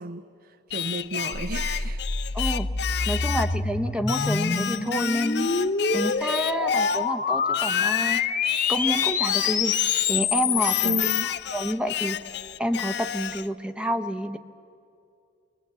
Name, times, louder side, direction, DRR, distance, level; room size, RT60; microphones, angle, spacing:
voice 1, 0.0-2.0 3.0-3.2 10.8-11.4, right 2 dB, 50° right, 10 dB, 0.6 m, -33 dB
Singing, 0.7-3.6 4.1-7.1 7.5-10.2 10.6-13.5, left 10 dB, 60° left, 0.5 m, -31 dB
sound 1, 1.3-11.2, left 5 dB, 45° left, 0.9 m, -26 dB
voice 2, 2.3-2.7 3.1-5.5 5.9-8.2 8.7-9.7 10.1-11.0 11.5-12.2 12.6-14.4, equal, 5° right, 9 dB, 0.8 m, -28 dB
23.0 x 20.5 x 8.3 m, 2.5 s
head